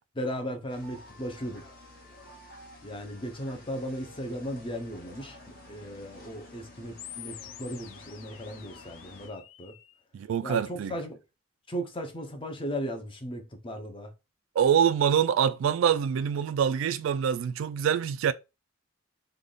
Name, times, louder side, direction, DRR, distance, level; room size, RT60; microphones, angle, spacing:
voice 1, 0.1-1.6 2.8-5.4 5.7-9.7 10.4-11.2 11.7-14.1, equal, 25° left, 0.6 m, -36 dB
sound 1, 0.7-9.3, left 1 dB, 50° left, 1.2 m, -51 dB
sound 2, 7.0-10.0, left 12 dB, 90° left, 0.3 m, -47 dB
voice 2, 10.1-11.0 14.6-18.3, right 8 dB, 90° right, 0.3 m, -25 dB
3.3 x 2.3 x 3.8 m
head